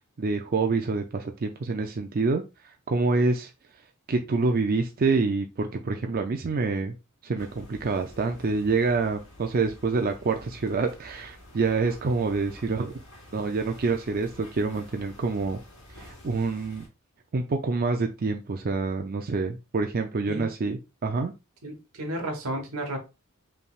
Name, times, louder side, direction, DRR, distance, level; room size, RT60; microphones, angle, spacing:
voice 1, 0.2-2.4 2.9-3.5 4.1-6.9 7.2-12.9 13.3-15.6 16.0-16.9 17.3-21.3, right 4 dB, 45° right, 0.4 m, -27 dB
sound 1, 7.4-16.9, left 1 dB, 65° left, 2.5 m, -49 dB
voice 2, 21.6-23.0, right 1 dB, 85° right, 1.4 m, -32 dB
5.3 x 3.3 x 2.4 m
head